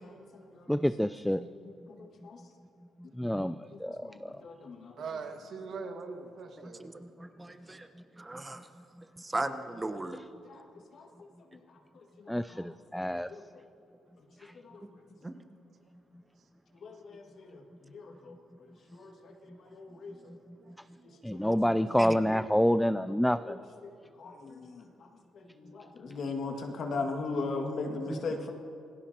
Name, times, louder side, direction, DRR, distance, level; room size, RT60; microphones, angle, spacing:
voice 1, 0.2-0.9 1.4-2.4 3.3-4.9 10.4-10.6 10.9-11.1 12.5-12.7 12.9-13.6 14.6-14.8 16.8-18.4 18.9-20.3 21.3-21.9 23.4-23.9 24.2-25.1 25.3-28.5, left 3 dB, 60° left, 2 dB, 2.0 m, -40 dB
voice 2, 0.7-1.4 3.2-4.0 12.3-13.3 21.2-23.6, equal, 5° left, 13 dB, 0.3 m, -27 dB
voice 3, 5.0-7.1 7.4-7.5 19.5-21.5, right 5 dB, 65° right, 4 dB, 1.7 m, -44 dB
voice 4, 7.2-7.9 8.2-8.6 9.2-10.2 15.2-15.3 22.0-22.4 28.1-28.2, right 2 dB, 15° right, 8 dB, 1.0 m, -36 dB
26.5 x 18.5 x 2.9 m, 2.6 s
cardioid pair, 90°, 0 cm